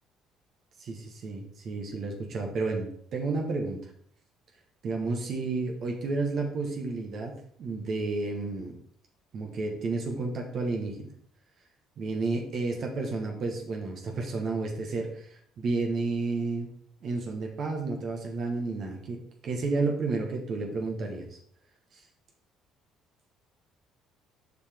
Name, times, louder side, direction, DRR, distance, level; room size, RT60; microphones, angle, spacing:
voice 1, 0.8-3.8 4.8-7.3 7.6-8.7 9.3-11.1 12.0-16.7 17.0-21.4 21.9-22.0, right 3 dB, 55° right, 1 dB, 1.4 m, -31 dB
6.7 x 4.9 x 3.6 m, 0.64 s
hypercardioid pair, 65°, 0 cm